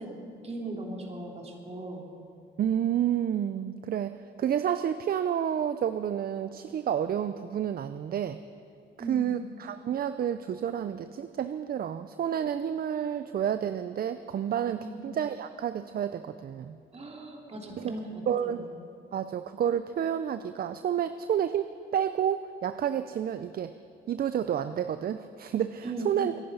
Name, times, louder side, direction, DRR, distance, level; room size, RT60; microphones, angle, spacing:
voice 1, 0.0-2.1 9.0-9.4 14.8-15.0 16.9-18.6 25.8-26.2, right 2 dB, 30° right, 0 dB, 3.3 m, -38 dB
voice 2, 2.6-8.4 9.1-16.8 17.8-17.9 18.3-18.7 19.1-23.8 24.1-26.3, right 9 dB, 50° right, 12 dB, 0.5 m, -30 dB
24.5 x 10.5 x 5.5 m, 2.6 s
cardioid pair, 90°, 20 cm